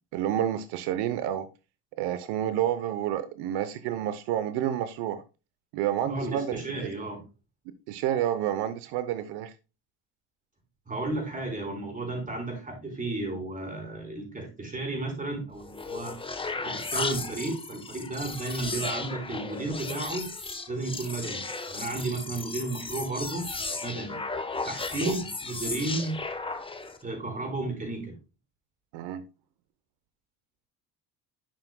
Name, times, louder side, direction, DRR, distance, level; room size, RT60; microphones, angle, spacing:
voice 1, 0.1-1.5 2.0-5.2 5.7-6.9 7.9-9.5 25.0-25.1 28.9-29.2, right 11 dB, 85° right, 0.9 m, -29 dB
voice 2, 6.0-7.2 10.9-16.1 16.6-20.3 20.7-23.5 23.8-24.2 24.7-26.2 27.0-28.1, right 2 dB, 20° right, 4.5 m, -33 dB
sound 1, 15.5-27.0, left 3 dB, 15° left, 1.0 m, -35 dB
11.5 x 6.0 x 2.2 m
cardioid pair, 105°, 38 cm